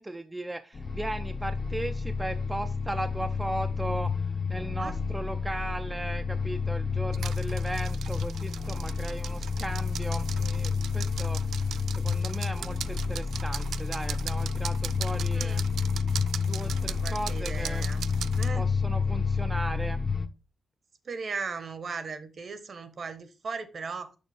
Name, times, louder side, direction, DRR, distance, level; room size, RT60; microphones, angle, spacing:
voice 1, 0.0-15.6 16.4-17.8 18.5-20.0, right 1 dB, 10° right, 0.4 m, -37 dB
sound 1, 0.7-20.3, left 5 dB, 35° left, 0.7 m, -30 dB
sound 2, 7.1-18.5, right 9 dB, 85° right, 0.3 m, -40 dB
voice 2, 15.3-15.6 17.0-18.1 18.4-18.6 21.0-24.2, right 5 dB, 45° right, 1.0 m, -37 dB
6.6 x 6.2 x 3.4 m
wide cardioid pair, 145°, 0 cm